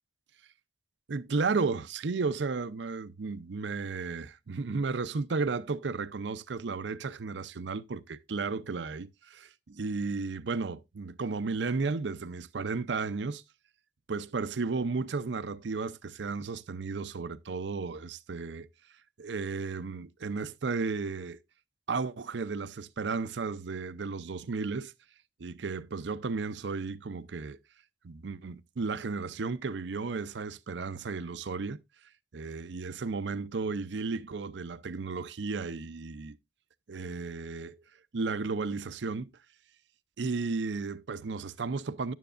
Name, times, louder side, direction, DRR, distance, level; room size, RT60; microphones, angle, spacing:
voice 1, 1.1-13.4 14.1-18.7 19.2-21.4 21.9-24.9 25.4-27.6 28.0-31.8 32.3-36.4 36.9-37.8 38.1-39.3 40.2-42.1, right 4 dB, 70° right, 0.6 m, -34 dB
11.0 x 9.2 x 2.5 m
head